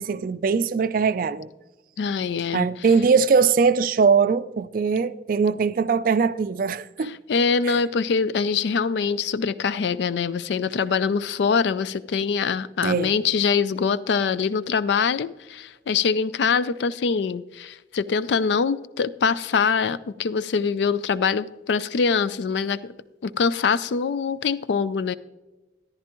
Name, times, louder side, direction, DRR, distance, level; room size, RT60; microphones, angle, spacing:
voice 1, 0.0-1.5 2.5-7.2 7.6-7.8 12.8-13.1, right 5 dB, 50° right, 0.3 m, -21 dB
voice 2, 2.0-2.7 7.0-22.9 23.2-25.1, left 5 dB, 70° left, 0.4 m, -24 dB
14.0 x 10.5 x 3.0 m
head